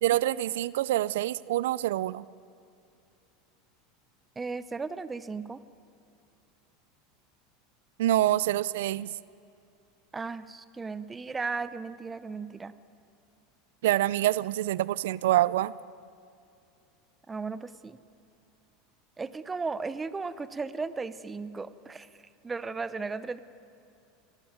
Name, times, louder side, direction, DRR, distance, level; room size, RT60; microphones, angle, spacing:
voice 1, 0.0-2.2 8.0-9.1 13.8-15.7, right 14 dB, 85° right, 20 dB, 0.5 m, -26 dB
voice 2, 4.4-5.6 10.1-12.7 17.3-18.0 19.2-22.1 22.4-23.4, right 4 dB, 15° right, 15 dB, 0.9 m, -35 dB
25.0 x 19.0 x 9.5 m, 2.6 s
supercardioid pair, 145°, 0 cm